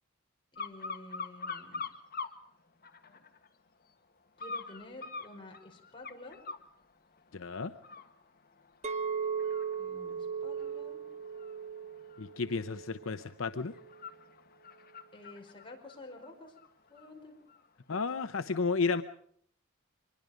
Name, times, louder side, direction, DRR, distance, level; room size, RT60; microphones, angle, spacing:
voice 1, 0.5-1.8 4.4-6.4 9.8-11.0 15.1-16.5 16.9-17.3, left 2 dB, 25° left, 0 dB, 5.4 m, -50 dB
sound 1, 0.6-2.4 2.8-3.5 4.4-6.7 7.2-7.4 7.8-17.1 17.5-17.6, left 4 dB, 45° left, 1.7 m, -45 dB
voice 2, 7.3-7.7 12.2-13.7 17.9-19.0, left 4 dB, 65° left, 10 dB, 0.8 m, -32 dB
Chink clink, 8.8-13.2 13.6-14.0, right 6 dB, 30° right, 1.2 m, -37 dB
25.0 x 22.0 x 5.2 m, 0.63 s
head